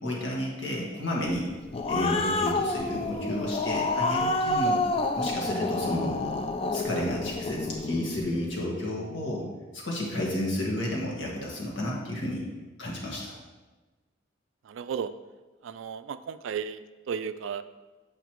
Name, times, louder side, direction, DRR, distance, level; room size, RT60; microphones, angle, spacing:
voice 1, 0.0-1.5 1.9-4.8 5.1-6.2 6.7-12.4 12.8-13.3, left 1 dB, 75° left, -3 dB, 1.6 m, -31 dB
Growling, 1.5-8.2, left 2 dB, 30° left, 0.3 m, -28 dB
voice 2, 14.6-15.1 15.6-17.6, right 7 dB, 80° right, 13 dB, 0.3 m, -34 dB
8.0 x 5.2 x 3.0 m, 1.2 s
head